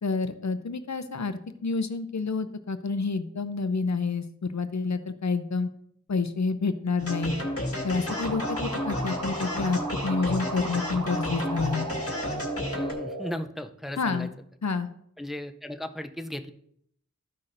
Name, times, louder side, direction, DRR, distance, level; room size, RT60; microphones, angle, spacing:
voice 1, 0.0-5.7 6.1-7.3 7.8-11.9 14.0-14.3 14.6-14.9, left 4 dB, 65° left, 10 dB, 0.6 m, -29 dB
sound 1, 7.0-12.9, left 1 dB, 50° left, 1.7 m, -32 dB
sound 2, 8.1-13.3, right 3 dB, 75° right, 1.2 m, -36 dB
voice 2, 12.7-14.3 15.2-16.5, left 1 dB, ahead, 8 dB, 0.5 m, -36 dB
14.0 x 5.8 x 2.6 m, 0.69 s
wide cardioid pair, 45°, 30 cm